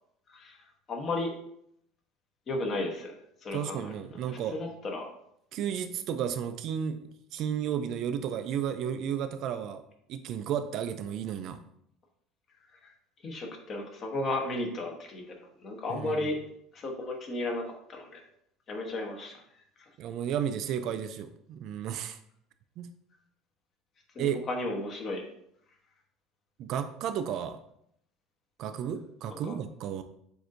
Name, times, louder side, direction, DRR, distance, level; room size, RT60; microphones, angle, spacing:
voice 1, 0.9-1.3 2.5-3.2 3.4-3.9 4.5-5.1 12.8-12.9 13.2-15.3 15.6-16.4 16.7-17.6 17.9-18.2 18.7-19.4 24.1-25.2 29.3-29.6, left 2 dB, 35° left, 2 dB, 0.9 m, -34 dB
voice 2, 3.5-4.6 5.5-7.0 7.3-9.8 10.1-11.6 15.9-16.2 20.0-22.2 22.8-22.9 24.2-24.4 26.6-27.6 28.6-30.0, right 9 dB, 50° right, 9 dB, 0.3 m, -33 dB
7.7 x 2.6 x 2.5 m, 0.71 s
cardioid pair, 140°, 0 cm